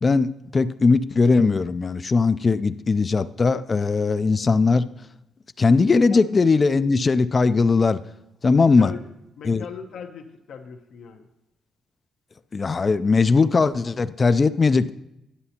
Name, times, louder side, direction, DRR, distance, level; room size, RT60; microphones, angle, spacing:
voice 1, 0.0-4.8 5.6-8.0 8.4-8.9 9.5-9.6 12.5-14.9, left 4 dB, 35° left, 14 dB, 0.4 m, -19 dB
voice 2, 5.9-6.2 8.6-9.0 9.4-11.3, left 6 dB, 70° left, 3 dB, 0.8 m, -39 dB
11.0 x 7.9 x 2.9 m, 0.86 s
cardioid pair, 90°, 0 cm